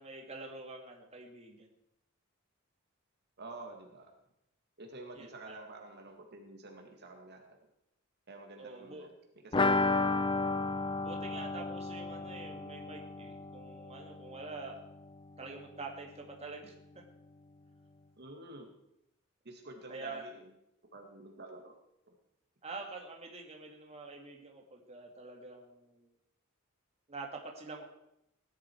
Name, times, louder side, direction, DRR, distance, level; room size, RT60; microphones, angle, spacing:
voice 1, 0.0-1.7 5.1-5.6 8.6-9.1 11.0-14.8 15.4-16.7 19.9-20.3 22.6-26.1 27.1-27.8, right 3 dB, 30° right, 1 dB, 2.2 m, -46 dB
voice 2, 3.4-4.1 4.8-7.6 8.3-10.1 10.4-10.6 18.2-18.7 19.4-20.5 20.9-21.7, right 2 dB, 50° right, 2 dB, 2.0 m, -49 dB
sound 1, 9.5-15.1 15.4-15.5 15.8-15.9, left 3 dB, 25° left, 0.6 m, -33 dB
18.0 x 11.5 x 4.6 m, 0.81 s
head